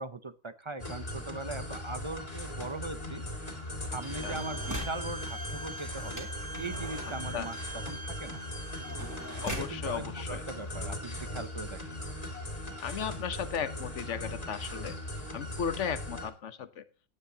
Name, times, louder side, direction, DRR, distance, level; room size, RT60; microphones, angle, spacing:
voice 1, 0.0-3.2 3.8-6.3 6.6-8.4 9.5-12.0, right 3 dB, 30° right, 12 dB, 0.6 m, -40 dB
sound 1, 0.8-16.3, left 1 dB, 30° left, 2.5 m, -39 dB
sound 2, 3.7-5.1 6.1-9.8 10.6-10.7 10.9-11.3, equal, 15° right, 3.2 m, -42 dB
Bowed string instrument, 4.0-9.7, right 2 dB, 55° right, 2.3 m, -44 dB
voice 2, 9.4-10.4 12.8-15.0 15.3-16.8, left 7 dB, 75° left, 13 dB, 1.2 m, -35 dB
17.5 x 9.8 x 2.8 m, 0.34 s
omnidirectional pair, 1.3 m